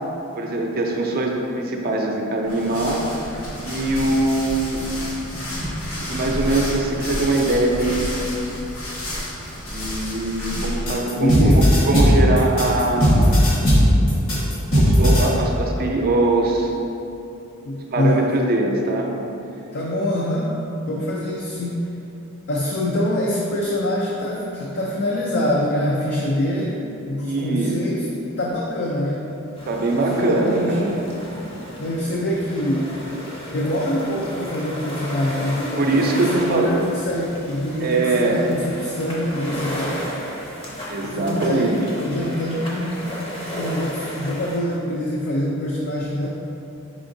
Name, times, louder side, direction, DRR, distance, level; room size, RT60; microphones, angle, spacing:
voice 1, 0.4-3.3 3.7-4.8 6.1-8.3 9.6-13.5 14.7-16.7 17.9-19.1 27.2-27.9 29.7-31.0 35.8-36.7 37.8-38.4 40.9-41.8, right 2 dB, 45° right, 0 dB, 0.5 m, -22 dB
sound 1, 2.4-11.0, equal, 85° left, 1.1 m, -30 dB
sound 2, 10.9-15.3, equal, 70° left, 1.4 m, -16 dB
voice 2, 11.2-11.7 17.7-18.3 19.7-20.5 20.9-21.9 22.5-28.1 28.4-29.2 30.0-31.0 31.8-32.9 33.5-40.1 41.0-43.0 43.6-46.3, left 1 dB, 55° left, -3 dB, 0.4 m, -25 dB
sound 3, 29.5-44.6, equal, 25° left, 0.7 m, -33 dB
4.9 x 3.6 x 2.6 m, 2.9 s
head